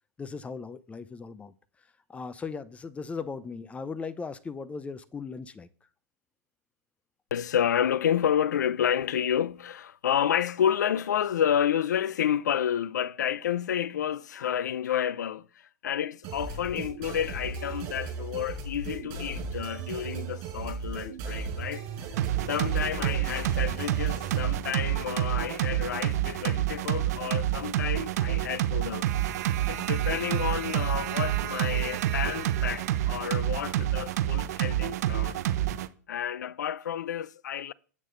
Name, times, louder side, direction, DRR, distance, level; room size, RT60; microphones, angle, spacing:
voice 1, 0.2-5.7, left 5 dB, 15° left, 0.7 m, -38 dB
voice 2, 7.3-22.1 22.4-29.1 29.7-35.4 36.1-37.7, left 9 dB, 80° left, 0.6 m, -30 dB
sound 1, 16.2-24.6, right 4 dB, 45° right, 5.3 m, -37 dB
sound 2, 22.2-35.9, right 13 dB, 65° right, 0.8 m, -28 dB
8.9 x 8.4 x 3.9 m
hypercardioid pair, 120°, 9 cm